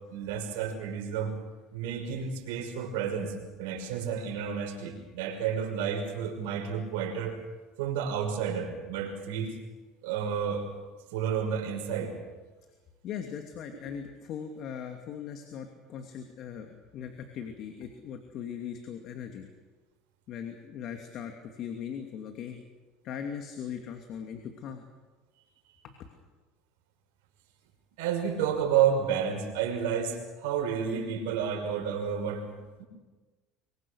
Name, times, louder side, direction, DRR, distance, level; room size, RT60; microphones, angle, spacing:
voice 1, 0.1-1.4 1.7-3.3 3.6-7.4 7.8-9.5 10.0-10.7 11.1-12.1 28.0-32.8, right 7 dB, 85° right, 1 dB, 6.1 m, -30 dB
voice 2, 13.0-19.5 20.3-22.6 23.0-24.9 25.8-25.9, left 8 dB, 55° left, 5 dB, 2.8 m, -39 dB
25.0 x 24.0 x 6.6 m, 1.3 s
supercardioid pair, 105°, 0 cm